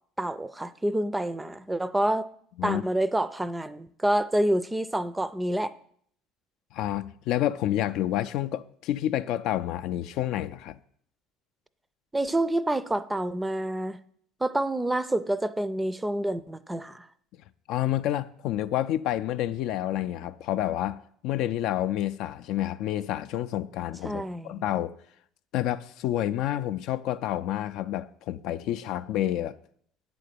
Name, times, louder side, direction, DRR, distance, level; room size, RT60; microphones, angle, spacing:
voice 1, 0.2-2.3 2.6-5.7 12.1-14.0 14.4-17.1 24.0-24.6, right 1 dB, 10° right, 0.4 m, -28 dB
voice 2, 6.7-10.8 17.7-24.9 25.5-29.5, left 12 dB, 65° left, 0.3 m, -29 dB
8.5 x 3.8 x 6.7 m
supercardioid pair, 80°, 0 cm